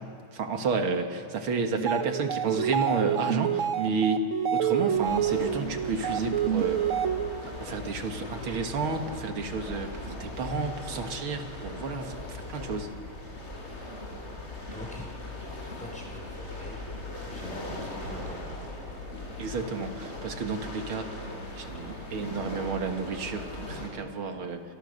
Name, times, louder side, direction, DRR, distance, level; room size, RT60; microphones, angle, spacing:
voice 1, 0.0-6.9 7.4-12.9 19.4-21.2 21.6-24.6, right 4 dB, 90° right, 5 dB, 2.6 m, -31 dB
sound 1, 1.7-7.5, right 9 dB, 50° right, 1.1 m, -28 dB
sound 2, 4.9-23.9, left 2 dB, 30° left, 5.7 m, -39 dB
voice 2, 7.7-8.2 14.7-15.1 15.8-18.6 21.6-22.0, equal, 5° left, -1 dB, 5.9 m, -46 dB
sound 3, 17.6-20.1, right 1 dB, 65° right, 5.9 m, -44 dB
28.5 x 27.0 x 6.6 m, 2.3 s
omnidirectional pair, 2.2 m